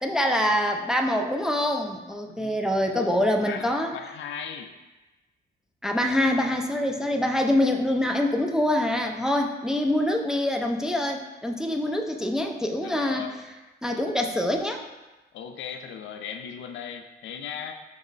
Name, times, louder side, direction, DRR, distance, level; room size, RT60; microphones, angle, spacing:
voice 1, 0.0-4.0 5.8-13.3 13.8-14.8, left 1 dB, 5° right, 3 dB, 0.3 m, -25 dB
voice 2, 2.3-4.7 12.8-13.4 15.3-17.7, left 7 dB, 70° left, 7 dB, 0.4 m, -38 dB
5.2 x 2.0 x 3.8 m, 1.1 s
cardioid pair, 90°, 20 cm